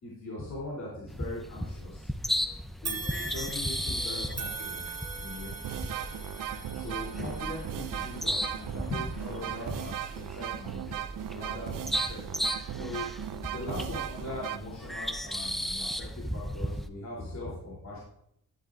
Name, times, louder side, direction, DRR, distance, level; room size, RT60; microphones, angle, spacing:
voice 1, 0.0-2.1 2.8-5.6 6.7-11.0 11.3-12.2 12.7-13.1 13.5-18.0, left 1 dB, 50° left, -6 dB, 3.8 m, -40 dB
sound 1, 1.1-16.9, equal, ahead, 0.5 m, -36 dB
sound 2, 2.8-12.2 12.7-12.8 13.8-13.9, right 4 dB, 45° right, 1.4 m, -43 dB
sound 3, 4.9-5.0 5.5-14.6, right 11 dB, 70° right, 0.6 m, -37 dB
11.5 x 10.5 x 2.7 m, 0.74 s
wide cardioid pair, 115°, 34 cm